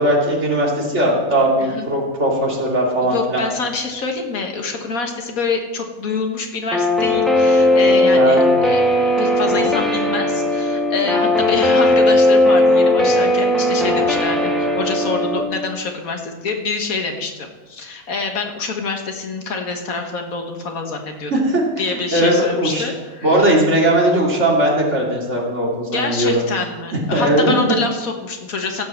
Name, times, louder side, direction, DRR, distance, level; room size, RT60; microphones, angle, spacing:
voice 1, 0.0-3.4 8.1-8.4 21.3-21.6 21.9-22.9 23.2-26.4 27.1-27.8, right 1 dB, 55° right, -3 dB, 3.0 m, -18 dB
voice 2, 3.0-8.8 9.2-21.3 21.8-23.5 25.9-28.8, left 4 dB, 80° left, 4 dB, 1.8 m, -26 dB
Guitar, 6.7-15.4, left 1 dB, ahead, 1.1 m, -16 dB
16.0 x 5.5 x 7.5 m, 1.2 s
omnidirectional pair, 1.5 m